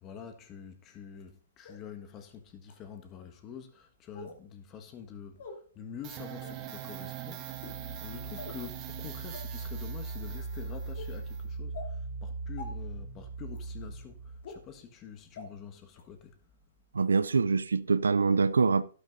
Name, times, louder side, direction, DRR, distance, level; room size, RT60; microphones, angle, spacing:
voice 1, 0.0-5.4 5.7-7.7 8.0-16.4, left 8 dB, 25° left, 1.5 m, -46 dB
sound 1, 1.6-1.7 2.6-2.7 4.1-4.4 5.4-5.5 6.3-6.6 7.5-7.8 8.4-8.6 9.3-9.4 10.0-10.2 11.0-11.1 11.7-11.9 12.6-12.7 13.5-13.6 14.4-14.5 15.4-15.5 16.0-16.1, left 4 dB, 60° left, 3.0 m, -44 dB
sound 2, 6.0-14.5, right 5 dB, 30° right, 1.4 m, -39 dB
voice 2, 16.9-18.8, right 4 dB, 80° right, 0.5 m, -24 dB
12.5 x 11.5 x 2.7 m
hypercardioid pair, 125°, 0 cm